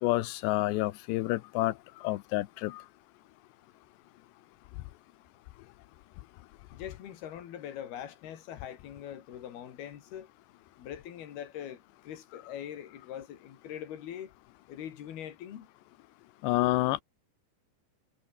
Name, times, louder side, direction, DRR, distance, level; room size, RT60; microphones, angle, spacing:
voice 1, 0.0-2.8 16.4-17.0, left 18 dB, 80° left, 3.0 m, -29 dB
voice 2, 6.7-10.3 10.8-14.3 14.7-15.7, left 10 dB, 65° left, 4.1 m, -42 dB
omnidirectional pair, 5.1 m